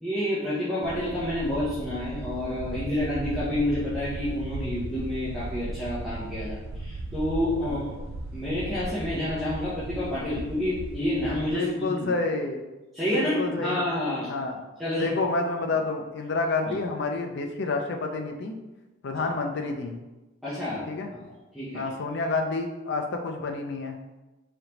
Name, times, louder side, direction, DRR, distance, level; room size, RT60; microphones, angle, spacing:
voice 1, 0.0-8.0 8.3-12.1 12.9-14.3 14.8-15.1 16.7-16.8 20.4-20.9 21.2-21.8, left 1 dB, ahead, -13 dB, 0.8 m, -29 dB
sound 1, 0.8-11.5, right 2 dB, 75° right, 0.3 m, -36 dB
voice 2, 11.5-12.6 13.1-13.8 14.3-14.6 14.9-18.6 19.0-20.0 20.9-21.1 21.7-24.2, left 3 dB, 60° left, 4 dB, 0.5 m, -29 dB
3.7 x 3.4 x 2.9 m, 1.1 s
head